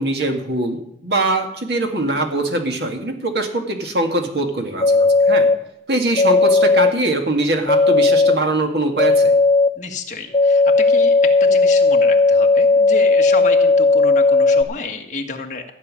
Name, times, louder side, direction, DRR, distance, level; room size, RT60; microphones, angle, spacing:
voice 1, 0.0-5.5 5.9-9.4, right 2 dB, 70° right, 4 dB, 2.0 m, -22 dB
sound 1, 4.8-5.5 6.2-6.9 7.7-8.4 9.0-9.7 10.3-14.6, left 3 dB, 25° left, 0.8 m, -14 dB
voice 2, 9.8-15.7, left 3 dB, 45° left, 2 dB, 1.6 m, -30 dB
15.0 x 5.6 x 9.7 m, 0.79 s
head